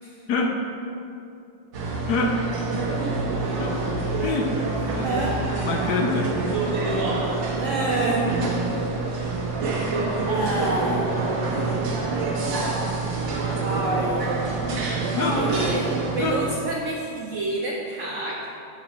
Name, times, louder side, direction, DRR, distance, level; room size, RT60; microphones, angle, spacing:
sound 1, 1.7-16.3, right 3 dB, 85° right, 1.7 m, -26 dB
voice 1, 4.2-4.6 4.9-5.1 5.6-6.3 15.2-15.4 16.2-16.4, left 3 dB, 70° left, 1 dB, 1.1 m, -25 dB
voice 2, 5.0-5.4 7.6-8.3 10.3-11.1 13.6-14.6 15.2-18.5, right 2 dB, 65° right, -3 dB, 0.7 m, -27 dB
7.1 x 6.9 x 3.0 m, 2.6 s
omnidirectional pair, 2.0 m